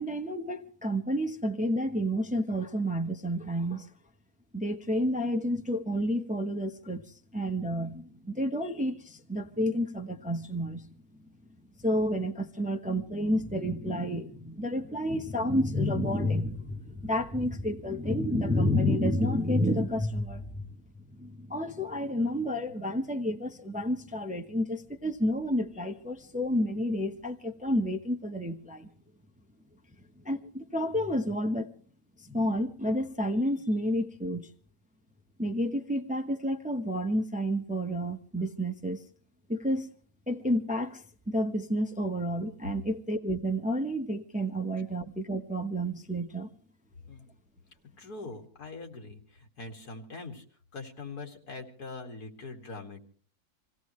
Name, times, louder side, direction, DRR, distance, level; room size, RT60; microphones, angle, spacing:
voice 1, 0.0-3.9 4.5-7.0 7.3-10.8 11.8-20.7 21.1-28.9 30.2-31.7 32.2-34.5 35.4-39.0 39.5-39.9 40.3-41.0 41.3-46.5, equal, 5° right, 0.8 m, -30 dB
voice 2, 48.0-50.4 50.7-53.1, left 3 dB, 90° left, 2.7 m, -43 dB
26.0 x 17.0 x 3.2 m
omnidirectional pair, 1.6 m